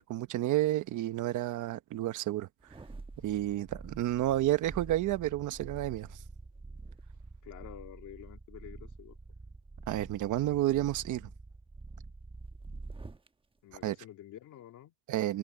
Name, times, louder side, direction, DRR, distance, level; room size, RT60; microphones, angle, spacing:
voice 1, 0.0-2.5 3.2-6.2 9.9-11.3 13.8-13.9 15.1-15.4, right 14 dB, 85° right, 1.1 m, -30 dB
sound 1, 2.6-13.3 13.7-13.8, right 3 dB, 15° right, 1.1 m, -47 dB
voice 2, 7.4-9.2 13.6-14.9, left 12 dB, 80° left, 2.7 m, -49 dB
cardioid pair, 90°, 30 cm